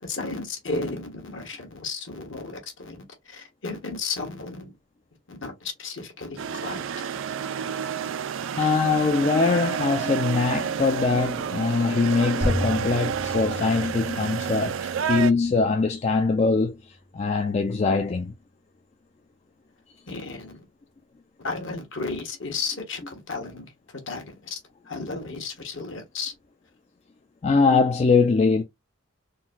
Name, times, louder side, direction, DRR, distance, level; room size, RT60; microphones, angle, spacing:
voice 1, 0.0-4.6 5.3-6.8 20.1-20.6 21.4-23.7 24.1-24.6 24.9-26.3, left 4 dB, 65° left, 1.2 m, -33 dB
sound 1, 6.4-15.3, right 7 dB, 65° right, 0.4 m, -30 dB
voice 2, 8.5-16.8 17.1-18.3 27.4-28.6, left 4 dB, 30° left, 0.3 m, -22 dB
sound 2, 12.4-17.5, equal, 20° right, 0.6 m, -34 dB
3.7 x 2.2 x 2.5 m
head